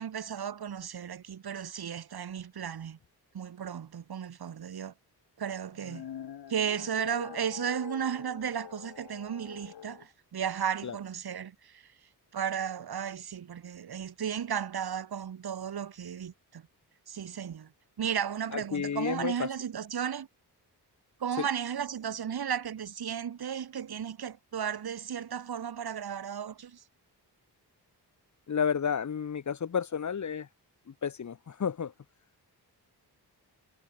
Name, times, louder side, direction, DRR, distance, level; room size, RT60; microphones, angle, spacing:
voice 1, 0.0-3.0 3.3-4.9 5.4-6.1 6.5-11.9 12.3-16.7 17.1-17.7 18.0-20.3 21.2-26.8, right 8 dB, 65° right, 2.8 m, -34 dB
sound 1, 5.7-10.1, left 9 dB, 75° left, 2.0 m, -45 dB
voice 2, 18.5-19.5 21.3-21.5 28.5-30.5 30.9-31.9, left 7 dB, 45° left, 1.5 m, -31 dB
wide cardioid pair, 170°, 40 cm